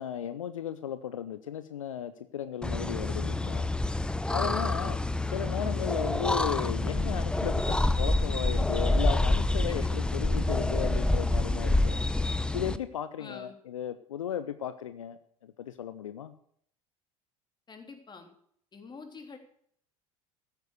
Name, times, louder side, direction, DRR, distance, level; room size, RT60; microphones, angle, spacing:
voice 1, 0.0-3.7 4.3-5.0 5.3-12.0 12.5-16.3, left 9 dB, 80° left, 12 dB, 0.7 m, -35 dB
sound 1, 2.6-12.8, left 2 dB, 5° left, 0.8 m, -27 dB
voice 2, 4.8-5.1 9.7-10.2 13.2-13.5 17.7-18.3 18.7-19.4, left 4 dB, 25° left, 5 dB, 3.3 m, -47 dB
14.0 x 9.4 x 6.7 m, 0.65 s
figure-of-eight pair, 70°, 17 cm